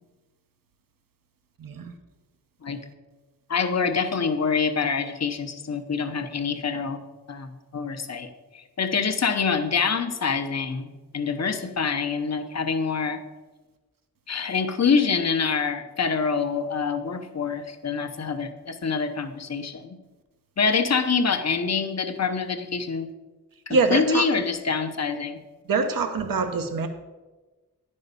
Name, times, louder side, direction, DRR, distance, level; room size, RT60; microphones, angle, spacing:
voice 1, 1.6-1.9 23.7-24.2 25.7-26.9, right 4 dB, 70° right, 7 dB, 1.0 m, -24 dB
voice 2, 3.5-7.0 7.3-13.2 14.3-20.0 20.6-23.1 23.7-25.4, left 5 dB, 45° left, 7 dB, 0.9 m, -26 dB
9.9 x 5.4 x 6.8 m, 1.2 s
wide cardioid pair, 115°, 35 cm